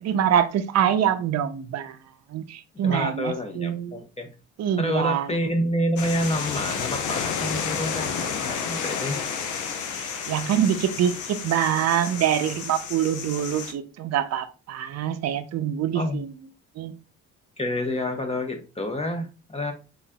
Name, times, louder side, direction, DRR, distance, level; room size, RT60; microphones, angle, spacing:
voice 1, 0.0-2.0 2.3-4.0 4.6-5.3 10.3-16.3 16.8-16.9, right 9 dB, 60° right, 0.5 m, -25 dB
voice 2, 2.7-4.3 4.8-9.2 15.9-16.2 17.6-19.7, equal, 20° left, 0.9 m, -28 dB
sound 1, 6.0-13.7, left 6 dB, 80° left, 0.7 m, -31 dB
4.0 x 3.7 x 2.2 m
cardioid pair, 90°, 30 cm